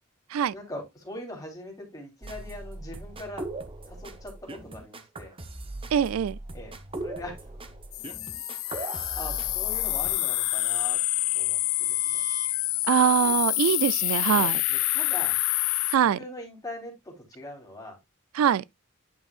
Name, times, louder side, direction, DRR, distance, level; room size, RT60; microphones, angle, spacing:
voice 1, 0.5-3.4 3.9-5.3 6.5-6.7 7.0-7.4 8.6-11.0 11.3-12.2 13.2-13.3 14.3-15.4 16.2-18.0, left 1 dB, 20° left, 3.2 m, -41 dB
sound 1, 2.2-10.1, right 2 dB, 25° right, 0.8 m, -39 dB
voice 2, 5.9-6.4 12.9-14.6 15.9-16.2 18.3-18.6, right 8 dB, 90° right, 0.3 m, -23 dB
sound 2, 7.9-16.0, left 20 dB, 75° left, 0.3 m, -27 dB
sound 3, 8.2-14.5, right 3 dB, 45° right, 4.5 m, -48 dB
10.5 x 5.4 x 2.4 m
head